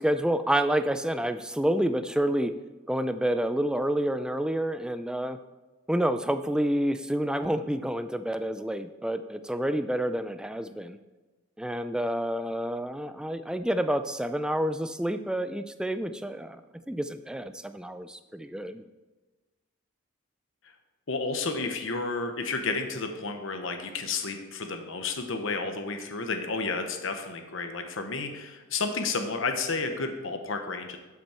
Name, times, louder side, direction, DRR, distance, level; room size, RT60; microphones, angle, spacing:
voice 1, 0.0-2.5 2.9-5.4 5.9-11.0 11.6-16.6 16.9-18.8, right 1 dB, 5° right, 10 dB, 0.3 m, -28 dB
voice 2, 21.1-31.0, left 4 dB, 65° left, 6 dB, 0.9 m, -31 dB
12.0 x 6.0 x 4.4 m, 1.2 s
head